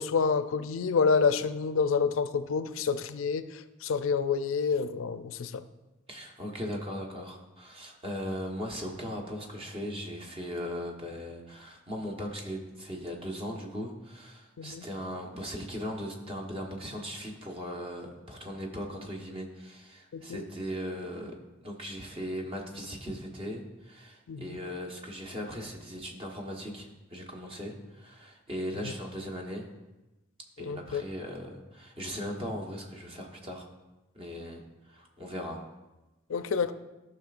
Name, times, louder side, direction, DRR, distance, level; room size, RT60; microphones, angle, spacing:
voice 1, 0.0-5.6 14.6-14.9 20.1-20.4 24.3-24.6 30.6-31.0 36.3-36.7, left 5 dB, 75° left, 11 dB, 0.4 m, -28 dB
voice 2, 6.1-21.4 21.6-29.7 30.6-33.7 34.1-35.6, equal, 30° right, 0 dB, 1.2 m, -38 dB
14.5 x 6.0 x 2.5 m, 1.1 s
head